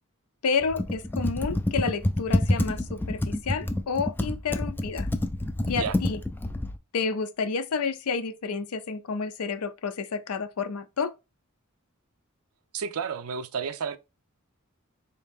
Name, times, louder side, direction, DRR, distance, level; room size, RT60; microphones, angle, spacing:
voice 1, 0.4-5.1 5.7-6.2 6.9-11.1, left 5 dB, 85° left, 0.5 m, -30 dB
Computer keyboard, 0.6-6.8, left 1 dB, 10° left, 0.3 m, -28 dB
voice 2, 12.7-14.0, right 6 dB, 80° right, 0.5 m, -31 dB
4.0 x 2.8 x 3.5 m
head